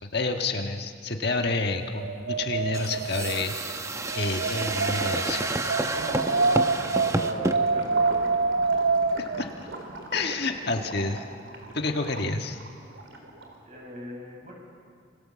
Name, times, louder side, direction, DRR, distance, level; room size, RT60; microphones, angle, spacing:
voice 1, 0.0-3.8 4.1-5.8 9.2-9.5 10.1-11.2 11.7-12.6, left 3 dB, 55° left, 4 dB, 1.6 m, -29 dB
Wind, 1.5-9.4, right 4 dB, 90° right, 1.5 m, -27 dB
sound 1, 2.7-7.6, right 2 dB, 15° right, 1.0 m, -30 dB
voice 2, 5.9-8.2 13.7-14.5, left 1 dB, 35° right, -1 dB, 7.8 m, -40 dB
Gurgling / Liquid, 5.9-13.7, right 2 dB, 65° right, 4.2 m, -41 dB
27.5 x 24.5 x 7.5 m, 2.1 s
head